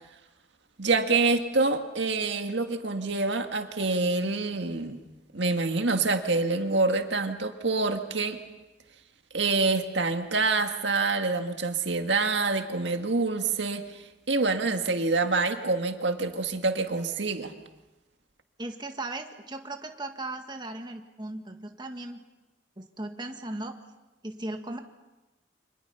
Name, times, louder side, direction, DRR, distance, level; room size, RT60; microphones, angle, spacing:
voice 1, 0.8-5.0 5.3-8.4 9.3-17.5, right 3 dB, 70° right, 6 dB, 1.9 m, -26 dB
voice 2, 18.6-22.2 22.8-23.8 24.2-24.8, right 2 dB, 25° right, 5 dB, 1.8 m, -37 dB
29.5 x 25.5 x 5.7 m, 1.1 s
head